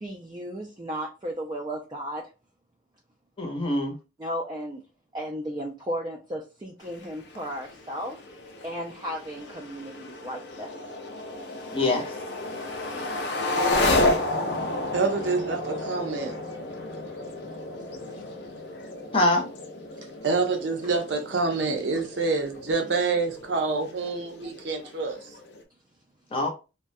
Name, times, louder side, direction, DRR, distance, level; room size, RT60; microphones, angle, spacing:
voice 1, 0.0-2.3 4.2-4.8 5.1-8.2 8.6-10.7 11.7-11.8 21.9-22.0, equal, 25° right, 0.3 m, -34 dB
voice 2, 3.4-3.9 11.7-12.1 12.9-13.1 13.9-14.0 19.1-19.4 26.3-26.5, left 2 dB, 30° left, 0.6 m, -24 dB
sound 1, 6.8-25.6, left 2 dB, 65° left, 0.5 m, -32 dB
voice 3, 14.9-16.4 20.2-25.2, right 4 dB, 75° right, 0.6 m, -27 dB
2.3 x 2.1 x 2.6 m
head